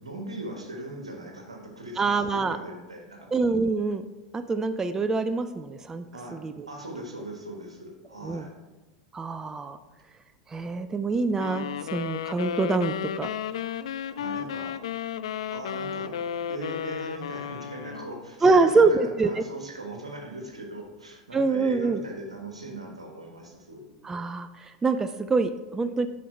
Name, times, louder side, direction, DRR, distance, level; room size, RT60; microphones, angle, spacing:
voice 1, 0.0-3.3 6.1-6.4 6.7-8.5 14.1-14.8 15.5-16.2 16.5-24.1, right 1 dB, 80° right, 2 dB, 1.4 m, -39 dB
voice 2, 2.0-2.6 3.3-4.1 4.3-6.1 6.3-6.7 8.2-8.5 9.1-9.8 10.5-13.3 18.4-19.4 21.3-22.0 24.0-26.1, right 3 dB, 15° right, 11 dB, 0.3 m, -25 dB
sound 1, 11.4-18.2, left 8 dB, 65° left, 0.3 m, -33 dB
8.4 x 5.3 x 4.4 m, 1.1 s
figure-of-eight pair, 85°, 3 cm